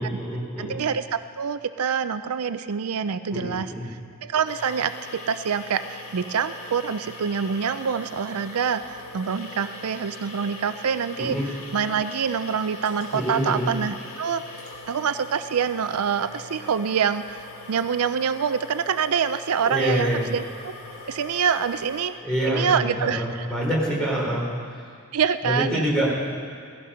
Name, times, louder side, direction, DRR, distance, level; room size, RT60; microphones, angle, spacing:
voice 1, 0.0-0.8 3.3-4.0 11.2-11.5 13.1-13.7 19.6-20.3 22.2-24.5 25.4-26.3, equal, 5° left, -5 dB, 4.1 m, -26 dB
voice 2, 0.6-11.4 11.7-14.4 14.9-20.7 21.0-22.1 22.5-23.5 25.1-25.8, right 7 dB, 80° right, 11 dB, 0.5 m, -26 dB
sound 1, 4.5-22.1, left 2 dB, 70° left, 2.3 m, -41 dB
17.0 x 15.0 x 5.7 m, 2.2 s
head